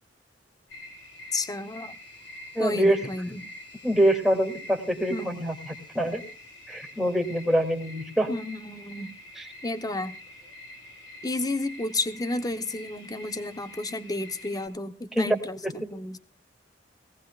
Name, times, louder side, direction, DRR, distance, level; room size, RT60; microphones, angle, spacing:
sound 1, 0.7-14.7, left 1 dB, 85° left, 4.1 m, -46 dB
voice 1, 1.3-2.0 2.6-3.4 5.1-5.3 8.3-9.1 9.6-10.2 11.2-16.2, left 2 dB, 20° left, 10 dB, 1.0 m, -32 dB
voice 2, 2.5-3.0 3.8-6.2 6.7-8.3 9.4-9.5 15.1-15.3 15.6-15.7, right 1 dB, ahead, 1 dB, 2.7 m, -25 dB
20.0 x 17.5 x 2.4 m, 0.40 s
head